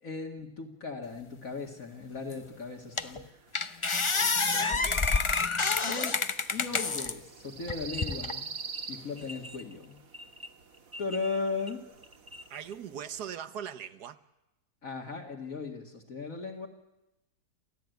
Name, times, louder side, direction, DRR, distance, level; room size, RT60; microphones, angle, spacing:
voice 1, 0.0-3.2 5.8-6.2 6.5-8.5 8.9-10.0 11.0-11.8 14.8-16.7, left 4 dB, 60° left, 2.4 m, -37 dB
sound 1, 2.3-2.4 3.0-3.2 3.5-7.1 7.7-8.3, left 4 dB, 30° left, 0.6 m, -28 dB
sound 2, 2.4-13.3, right 5 dB, 60° right, 2.1 m, -47 dB
voice 2, 4.1-5.0 12.5-14.2, right 8 dB, 85° right, 1.6 m, -41 dB
sound 3, 7.9-8.1 8.4-12.7, left 1 dB, 20° right, 0.8 m, -45 dB
28.5 x 14.5 x 9.3 m
omnidirectional pair, 1.7 m